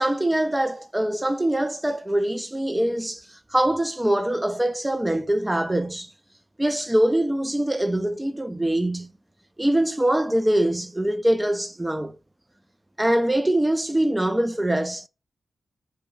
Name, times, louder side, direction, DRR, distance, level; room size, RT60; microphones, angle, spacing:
voice 1, 0.0-6.1 6.6-9.1 9.6-12.2 13.0-15.1, right 1 dB, 15° right, 0.4 m, -23 dB
4.5 x 2.0 x 3.1 m
cardioid pair, 50°, 0 cm